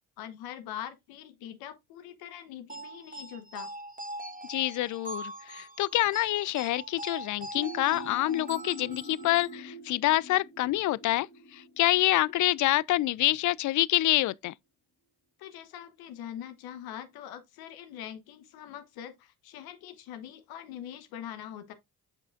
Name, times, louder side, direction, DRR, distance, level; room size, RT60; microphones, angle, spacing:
voice 1, 0.2-3.7 15.4-21.7, left 10 dB, 75° left, 1.0 m, -43 dB
sound 1, 2.7-9.6, right 1 dB, 20° right, 1.4 m, -42 dB
voice 2, 4.5-11.3 11.5-14.5, left 16 dB, 55° left, 0.4 m, -27 dB
sound 2, 7.6-13.1, equal, 35° left, 2.2 m, -46 dB
8.0 x 5.5 x 2.5 m
hypercardioid pair, 55°, 37 cm